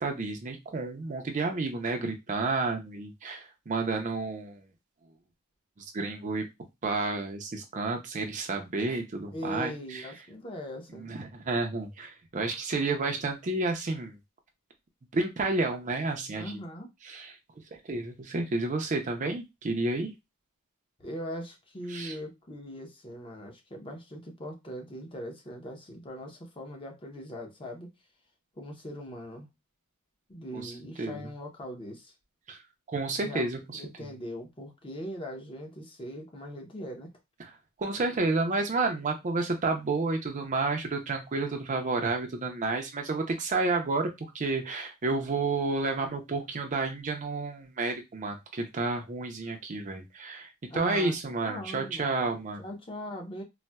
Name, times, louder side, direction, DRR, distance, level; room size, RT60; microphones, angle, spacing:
voice 1, 0.0-4.6 5.9-6.5 6.8-10.1 11.0-14.2 15.1-16.6 17.0-17.4 17.7-20.1 21.9-22.2 30.5-30.7 31.0-31.3 32.5-32.6 32.9-33.8 37.4-37.5 37.8-52.6, right 3 dB, 35° right, 0.5 m, -31 dB
voice 2, 9.3-11.1 16.3-16.9 21.0-27.9 28.6-29.5 30.3-32.1 33.2-33.5 33.7-37.1 50.7-51.2 51.4-52.3 52.6-53.4, equal, 25° left, 0.7 m, -40 dB
4.0 x 2.1 x 2.2 m
head